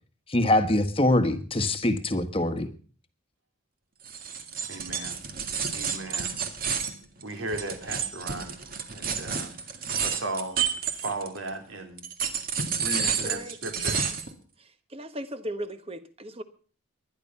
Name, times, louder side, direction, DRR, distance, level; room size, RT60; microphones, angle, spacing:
voice 1, 0.3-2.7, left 1 dB, 25° left, 10 dB, 1.3 m, -23 dB
sound 1, 4.0-11.5 12.0-14.3, right 6 dB, 45° right, 1.9 m, -30 dB
voice 2, 4.7-5.2 5.7-6.3 7.2-8.5 8.9-9.5 10.0-10.6 10.9-12.0 12.8-14.0, right 2 dB, 70° right, 5 dB, 3.4 m, -36 dB
voice 3, 13.2-13.6 14.9-16.4, equal, 30° right, 11 dB, 1.2 m, -36 dB
21.0 x 11.0 x 5.6 m, 0.42 s
head